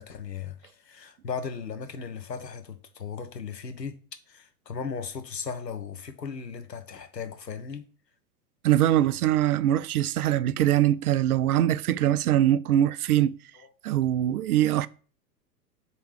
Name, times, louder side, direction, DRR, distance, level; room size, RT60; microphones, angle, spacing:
voice 1, 0.0-4.0 4.3-7.9 13.6-13.7, left 6 dB, 85° left, 0.9 m, -37 dB
voice 2, 8.6-13.4 13.8-14.9, right 12 dB, 65° right, 0.5 m, -23 dB
7.8 x 3.0 x 4.8 m
figure-of-eight pair, 100°, 48 cm